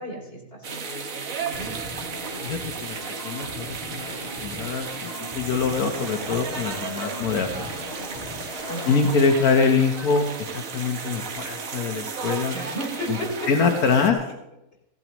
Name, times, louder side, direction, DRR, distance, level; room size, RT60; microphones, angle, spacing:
voice 1, 0.0-1.8 8.7-9.1 12.5-13.5, equal, 40° left, -2 dB, 4.2 m, -34 dB
sound 1, 0.6-14.1, right 5 dB, 70° right, 1.5 m, -34 dB
sound 2, 1.5-9.1, left 1 dB, 35° right, 3.7 m, -40 dB
voice 2, 2.4-3.0 3.2-4.0 4.4-7.7 8.9-12.6 13.1-13.2 13.5-14.2, left 5 dB, 85° left, 4 dB, 1.6 m, -24 dB
sound 3, 5.6-9.5, left 3 dB, 25° left, 0.9 m, -44 dB
16.0 x 15.0 x 3.0 m, 0.87 s
omnidirectional pair, 1.5 m